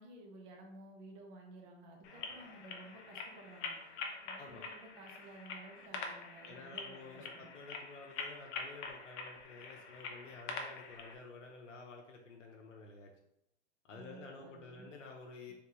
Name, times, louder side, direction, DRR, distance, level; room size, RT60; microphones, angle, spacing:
voice 1, 0.0-3.7 4.2-7.5 13.9-14.9 15.5-15.6, right 2 dB, 40° right, 1 dB, 1.0 m, -54 dB
sound 1, 2.0-11.2, left 4 dB, 20° left, 0.3 m, -45 dB
voice 2, 6.5-13.1 13.9-15.5, left 4 dB, 85° left, 0 dB, 0.7 m, -51 dB
3.3 x 3.3 x 3.0 m, 0.82 s
hypercardioid pair, 110°, 36 cm